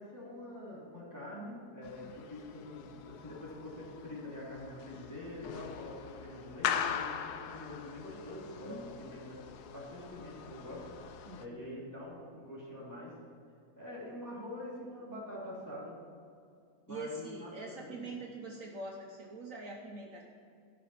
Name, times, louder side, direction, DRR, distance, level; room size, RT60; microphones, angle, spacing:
voice 1, 0.0-10.9 11.4-13.2 13.8-16.0 16.9-18.0, left 1 dB, 10° left, -7 dB, 2.7 m, -45 dB
sound 1, 1.8-11.5, left 8 dB, 80° left, 1.2 m, -41 dB
voice 2, 11.3-11.7 16.9-20.2, right 2 dB, 60° right, 0 dB, 1.2 m, -44 dB
14.0 x 5.8 x 5.6 m, 2.4 s
omnidirectional pair, 1.7 m